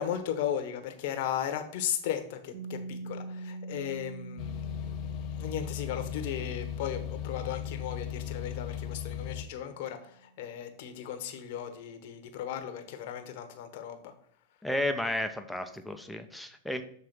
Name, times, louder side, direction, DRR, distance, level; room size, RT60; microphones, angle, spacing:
voice 1, 0.0-14.1, left 9 dB, 60° left, 7 dB, 1.1 m, -36 dB
Piano, 2.5-9.8, right 2 dB, 55° right, 2.2 m, -45 dB
sound 1, 4.4-9.4, left 8 dB, 45° left, 0.6 m, -37 dB
voice 2, 14.6-16.8, left 1 dB, 5° left, 7 dB, 0.8 m, -32 dB
6.8 x 3.3 x 6.0 m, 0.63 s
hypercardioid pair, 115°, 0 cm